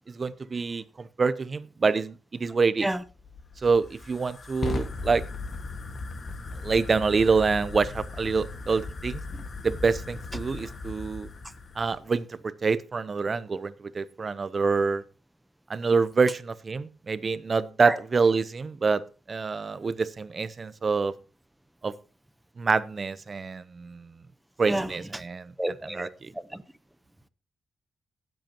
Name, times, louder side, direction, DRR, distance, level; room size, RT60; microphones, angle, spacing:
voice 1, 0.1-2.9 3.6-5.2 6.6-9.2 9.6-11.3 11.8-15.0 15.7-19.0 19.3-21.1 21.8-21.9 22.6-24.2 24.6-25.5 25.8-26.3, right 4 dB, 40° right, 0.7 m, -26 dB
Fire, 3.1-12.0, left 3 dB, 45° left, 1.6 m, -37 dB
voice 2, 24.7-25.2 25.6-26.6, right 1 dB, 5° right, 0.9 m, -31 dB
18.5 x 7.9 x 2.9 m
cardioid pair, 90°, 0 cm